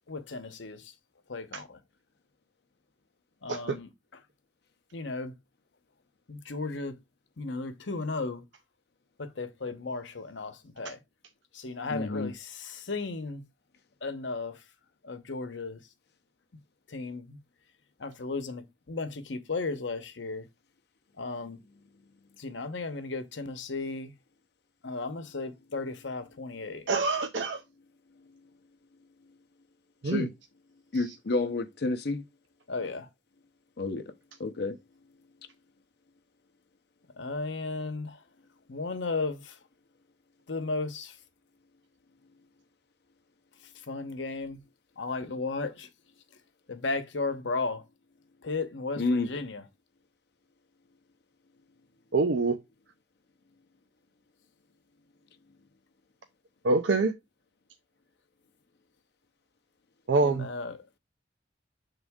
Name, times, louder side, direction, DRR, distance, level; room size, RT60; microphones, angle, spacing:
voice 1, 0.1-0.9 1.3-1.8 3.4-4.2 4.9-5.3 6.3-7.0 7.4-8.4 9.2-11.0 11.5-13.5 14.0-14.6 15.0-15.8 16.9-17.4 18.0-20.5 21.2-21.6 22.4-24.1 24.8-26.9 32.7-33.1 37.2-38.2 38.7-39.6 40.5-41.2 43.6-44.6 45.0-45.9 46.7-47.8 48.4-49.6 60.2-60.8, left 3 dB, 75° left, 0.9 m, -35 dB
voice 2, 11.9-12.3 30.0-30.3 30.9-32.2 33.8-34.1 34.4-34.8 49.0-49.3, left 3 dB, 60° left, 0.6 m, -30 dB
voice 3, 26.9-27.6 30.0-30.2 52.1-52.6 56.6-57.1 60.1-60.5, right 3 dB, 75° right, 0.6 m, -25 dB
7.1 x 3.7 x 3.6 m
head